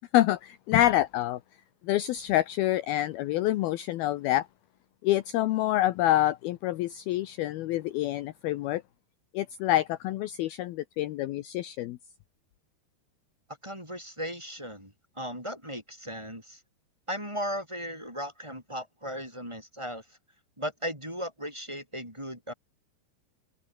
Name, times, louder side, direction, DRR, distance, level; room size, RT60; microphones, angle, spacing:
voice 1, 0.1-1.4 1.8-4.5 5.0-8.8 9.3-12.0, left 14 dB, 75° left, 2.6 m, -27 dB
voice 2, 13.6-16.6 17.1-20.0 20.6-22.5, equal, 5° right, 7.8 m, -36 dB
omnidirectional pair, 4.9 m